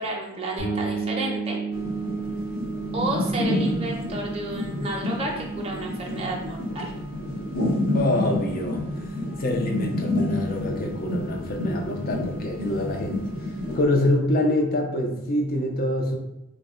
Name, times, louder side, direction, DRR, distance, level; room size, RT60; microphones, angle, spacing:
voice 1, 0.0-1.6 2.9-6.9, right 2 dB, 25° right, -1 dB, 0.6 m, -31 dB
sound 1, 0.6-10.2, right 4 dB, 60° left, 1.4 m, -35 dB
sound 2, 1.7-13.8, left 1 dB, 80° left, 1.4 m, -29 dB
voice 2, 7.9-8.8 9.4-13.2 13.7-16.2, left 1 dB, 45° left, 2 dB, 0.5 m, -25 dB
3.2 x 2.1 x 3.6 m, 0.94 s
head